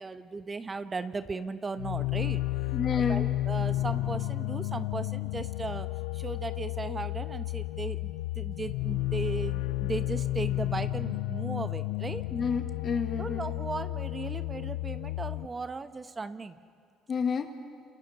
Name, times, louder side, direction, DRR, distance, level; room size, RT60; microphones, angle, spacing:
voice 1, 0.0-2.4 2.9-12.2 13.2-16.6, right 4 dB, 30° right, 10 dB, 1.1 m, -37 dB
sound 1, 1.8-15.5, left 17 dB, 85° left, 0.5 m, -32 dB
voice 2, 2.7-3.3 12.3-13.5 17.1-17.5, left 6 dB, 45° left, 6 dB, 1.9 m, -30 dB
29.0 x 28.5 x 4.3 m, 2.1 s
supercardioid pair, 65°, 0 cm